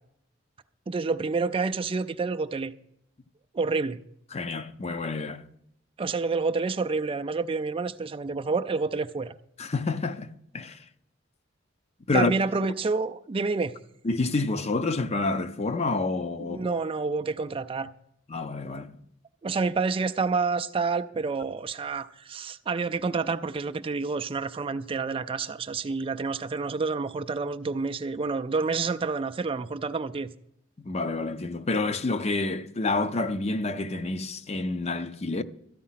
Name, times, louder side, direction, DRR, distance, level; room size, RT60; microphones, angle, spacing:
voice 1, 0.9-2.7 3.5-4.0 6.0-9.3 12.1-13.7 16.4-17.9 19.4-30.3, right 4 dB, 25° right, 0.4 m, -28 dB
voice 2, 4.3-5.4 9.6-10.8 12.1-12.3 14.0-16.7 18.3-19.0 30.8-35.4, left 3 dB, 35° left, 0.6 m, -28 dB
13.5 x 9.3 x 5.7 m
head